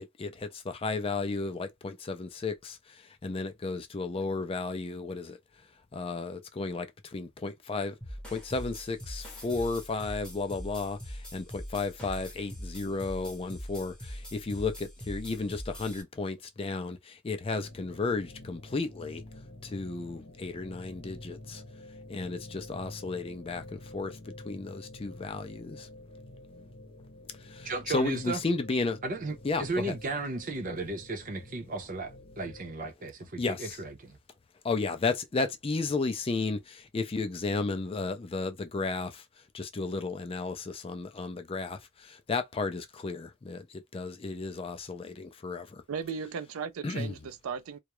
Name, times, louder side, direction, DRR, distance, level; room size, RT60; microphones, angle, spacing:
voice 1, 0.0-2.8 3.2-5.4 5.9-8.0 8.3-19.2 19.6-21.6 22.1-24.2 24.5-25.9 27.4-29.0 29.4-29.9 33.4-33.8 34.6-39.2 39.5-45.8 46.8-47.2, left 3 dB, 25° left, 0.4 m, -33 dB
sound 1, 8.0-16.0, equal, 5° left, 0.8 m, -42 dB
sound 2, 17.6-32.8, left 1 dB, 60° left, 0.7 m, -48 dB
voice 2, 27.6-28.4 29.0-34.2, right 3 dB, 40° right, 0.6 m, -35 dB
voice 3, 45.9-47.8, right 6 dB, 90° right, 0.4 m, -36 dB
2.3 x 2.0 x 3.0 m
head